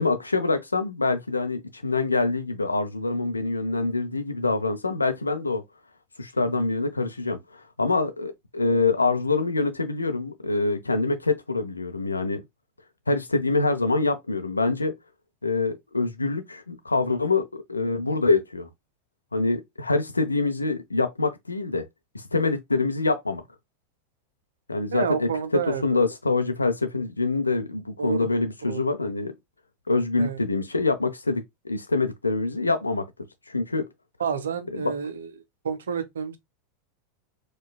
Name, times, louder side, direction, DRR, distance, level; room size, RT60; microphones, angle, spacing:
voice 1, 0.0-5.6 6.2-12.4 13.1-14.9 15.4-18.7 19.3-21.8 22.1-23.4 24.7-29.3 29.9-33.0 33.5-33.8 34.7-34.9, left 3 dB, 85° left, 0.5 m, -25 dB
voice 2, 24.9-26.0 28.0-28.3 28.6-28.8 30.2-30.4 34.2-35.3 35.6-36.4, right 6 dB, 75° right, 0.6 m, -29 dB
4.5 x 2.3 x 2.3 m
figure-of-eight pair, 85°, 0 cm